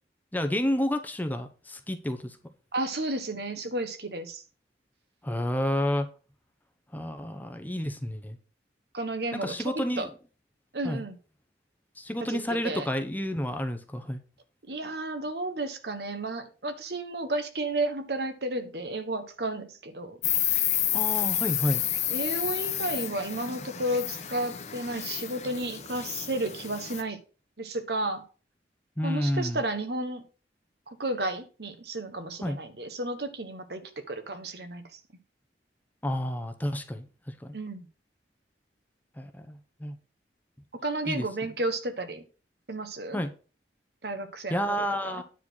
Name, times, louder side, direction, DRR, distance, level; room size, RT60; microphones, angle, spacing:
voice 1, 0.3-2.4 5.2-6.1 6.9-8.4 9.3-10.1 10.8-11.0 12.0-14.2 20.9-21.8 29.0-29.6 32.4-32.6 36.0-37.5 39.2-40.0 41.1-41.3 43.1-43.3 44.5-45.2, equal, 10° left, 0.8 m, -30 dB
voice 2, 2.7-4.4 8.9-10.1 10.7-11.2 12.2-12.9 14.7-20.2 22.1-27.2 27.6-28.2 29.0-30.2 30.9-35.0 37.5-37.9 40.8-42.2 42.7-43.2 44.0-44.8 45.0-45.2, right 2 dB, 65° right, 1.3 m, -32 dB
Insect, 20.2-27.0, left 11 dB, 40° left, 1.1 m, -30 dB
9.9 x 4.4 x 6.3 m
head